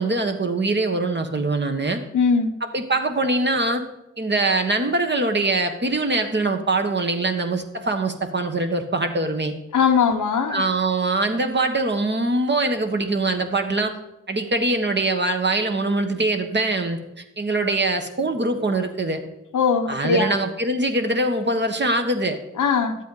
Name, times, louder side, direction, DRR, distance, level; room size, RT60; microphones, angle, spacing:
voice 1, 0.0-2.0 2.6-3.8 4.2-9.5 10.5-13.9 14.3-17.0 17.4-19.2 19.9-22.4, right 2 dB, 35° right, 1.4 m, -23 dB
voice 2, 2.1-2.5 9.7-10.6 19.5-20.4 22.6-23.0, left 5 dB, 70° left, 1.0 m, -20 dB
11.5 x 8.2 x 4.0 m
cardioid pair, 50°, 32 cm